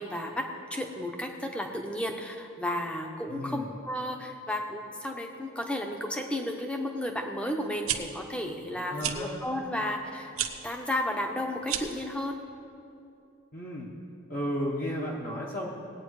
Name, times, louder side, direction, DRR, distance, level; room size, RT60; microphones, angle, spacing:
voice 1, 0.0-10.3 10.6-12.4, left 1 dB, 5° left, 3 dB, 0.9 m, -33 dB
voice 2, 3.3-3.7 8.9-9.4 13.5-13.9 14.3-15.7, equal, 40° left, -3 dB, 1.1 m, -33 dB
sound 1, 7.7-8.0 9.0-9.2 10.3-10.5 11.6-12.0, right 10 dB, 80° right, 0.8 m, -30 dB
18.5 x 9.0 x 4.8 m, 2.6 s
head